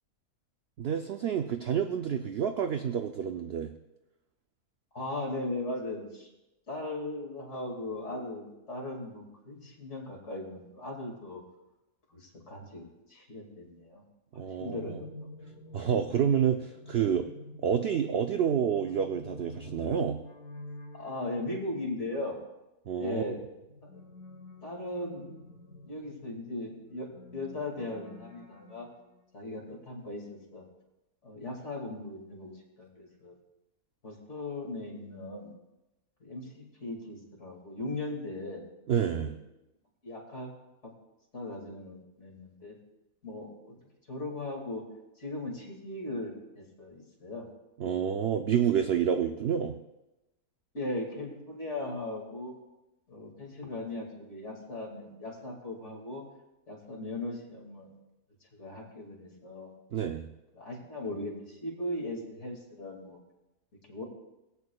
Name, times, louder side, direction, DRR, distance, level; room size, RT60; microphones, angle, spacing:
voice 1, 0.8-3.7 14.3-14.8 15.7-17.3 17.6-20.2 22.9-23.2 38.9-39.4 47.8-49.8 59.9-60.2, right 8 dB, 75° right, 6 dB, 0.5 m, -28 dB
voice 2, 4.9-6.3 6.7-11.4 12.1-14.0 14.3-15.1 20.9-22.4 23.0-23.4 23.8-24.0 24.6-25.2 25.8-27.1 27.3-28.9 29.3-30.6 31.2-33.4 34.0-35.5 36.2-38.6 39.2-39.3 40.0-40.5 41.3-42.8 43.2-43.7 44.1-44.8 45.2-47.4 50.7-52.5 53.1-56.2 56.7-57.9 58.5-59.7 60.5-63.2 63.8-64.0, left 2 dB, 50° left, -1 dB, 2.5 m, -38 dB
sound 1, 14.6-22.1 23.3-29.3, left 2 dB, 75° left, 1.8 m, -48 dB
19.0 x 8.3 x 2.3 m, 0.96 s
omnidirectional pair, 1.6 m